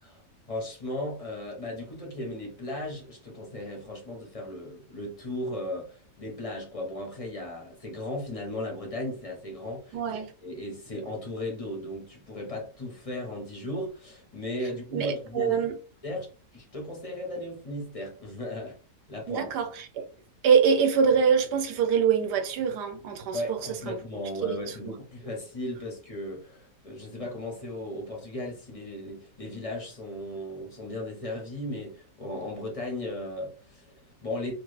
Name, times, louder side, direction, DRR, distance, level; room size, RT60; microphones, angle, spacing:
voice 1, 0.0-15.6 16.0-18.8 19.1-19.5 23.3-34.5, left 1 dB, 40° left, 0.5 m, -36 dB
voice 2, 9.9-10.3 14.9-15.7 19.3-20.0 20.4-23.6 23.9-24.0 24.4-24.9, right 6 dB, 90° right, 1.2 m, -24 dB
3.0 x 2.3 x 3.1 m
omnidirectional pair, 1.8 m